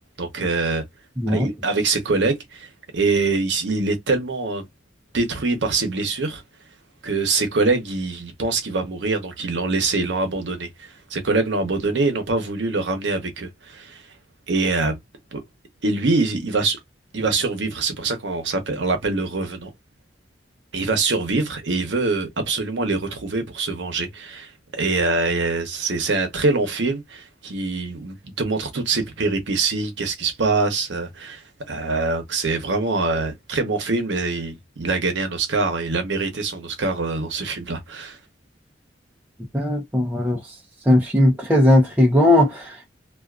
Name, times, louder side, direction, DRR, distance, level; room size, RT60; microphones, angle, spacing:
voice 1, 0.2-0.8 1.3-4.6 5.1-6.4 7.0-14.0 14.5-14.9 15.3-15.4 15.8-16.8 17.1-19.7 20.7-38.2, right 3 dB, 75° right, 0.8 m, -24 dB
voice 2, 1.2-1.5 39.5-40.6 40.9-42.9, left 1 dB, 10° right, 0.6 m, -18 dB
2.4 x 2.4 x 2.3 m
head